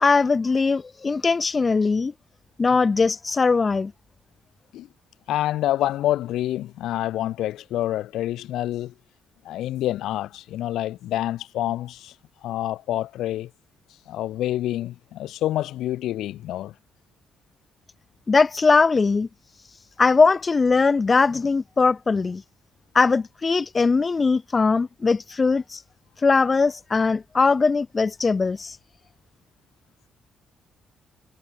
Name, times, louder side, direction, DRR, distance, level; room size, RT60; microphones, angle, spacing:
voice 1, 0.0-2.1 2.6-3.9 18.3-19.3 20.0-22.4 22.9-25.8 26.2-28.8, left 4 dB, 30° left, 0.5 m, -20 dB
voice 2, 5.3-8.9 9.4-12.1 12.4-13.5 14.1-16.7, left 13 dB, 85° left, 2.1 m, -27 dB
cardioid pair, 90°, 0 cm